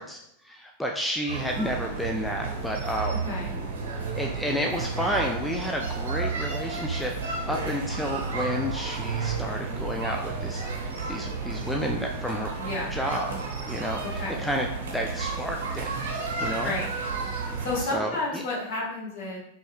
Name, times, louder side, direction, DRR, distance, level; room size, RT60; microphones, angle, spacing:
voice 1, 0.0-3.2 4.1-12.5 12.9-13.3 13.7-14.7 14.9-15.9 16.4-16.7 17.9-18.4, equal, 5° left, 1 dB, 0.4 m, -31 dB
sound 1, 1.3-17.8, right 4 dB, 65° right, 0.8 m, -32 dB
voice 2, 3.2-3.6 12.6-12.9 14.0-14.3 16.6-16.9 17.6-19.4, left 2 dB, 50° left, -3 dB, 1.4 m, -31 dB
5.3 x 3.1 x 2.2 m, 0.75 s
figure-of-eight pair, 90°, 0 cm